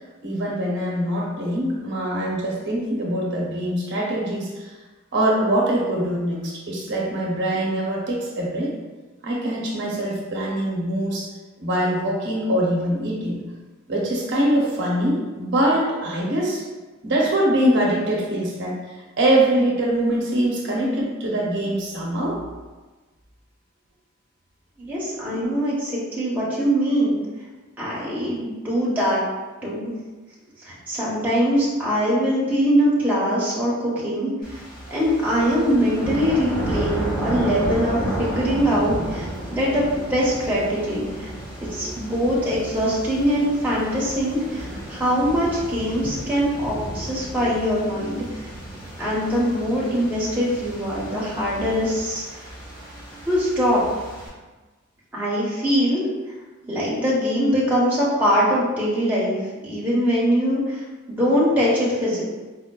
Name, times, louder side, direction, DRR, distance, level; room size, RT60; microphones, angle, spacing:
voice 1, 0.2-4.7 5.1-8.8 9.2-11.3 11.6-13.4 13.9-16.6 17.0-18.8 19.2-22.4 25.3-25.4 41.6-41.9 46.6-46.7, right 1 dB, 60° right, -3 dB, 0.7 m, -23 dB
voice 2, 24.8-27.2 27.8-29.2 29.6-29.9 30.6-34.6 34.9-41.3 41.7-48.5 49.0-52.4 53.2-53.8 55.1-56.0 56.6-59.4 59.6-62.2, equal, 10° right, -7 dB, 0.7 m, -22 dB
sound 1, 34.4-54.3, right 1 dB, 45° left, 1.3 m, -33 dB
4.5 x 2.1 x 2.2 m, 1.2 s
head